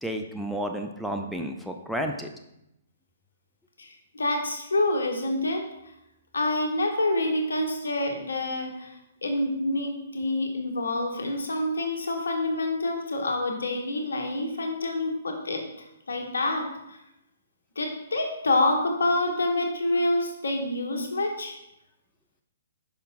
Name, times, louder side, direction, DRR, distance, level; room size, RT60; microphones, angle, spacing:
voice 1, 0.0-2.3, equal, ahead, 2 dB, 0.5 m, -31 dB
voice 2, 3.8-5.6 6.3-8.9 9.2-15.6 16.1-17.0 17.8-21.6, left 2 dB, 80° left, 3 dB, 1.2 m, -27 dB
5.6 x 5.6 x 3.6 m, 0.84 s
hypercardioid pair, 130°, 0 cm